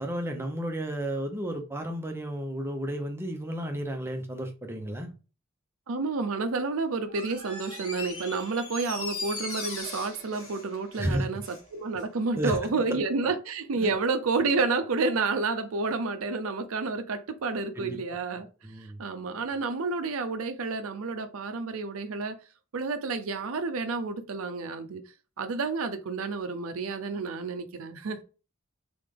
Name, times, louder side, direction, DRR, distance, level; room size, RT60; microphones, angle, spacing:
voice 1, 0.0-5.1 11.0-11.3 12.4-12.6 12.9-13.0 13.8-13.9 17.7-18.0 18.6-19.0, right 1 dB, 10° right, 0.8 m, -32 dB
voice 2, 5.9-18.5 19.0-22.4 22.7-25.0 25.4-28.2, right 4 dB, 80° right, 0.6 m, -30 dB
Door, 7.1-11.7 12.0-12.1, left 2 dB, 70° left, 1.9 m, -39 dB
3.8 x 3.4 x 3.7 m
head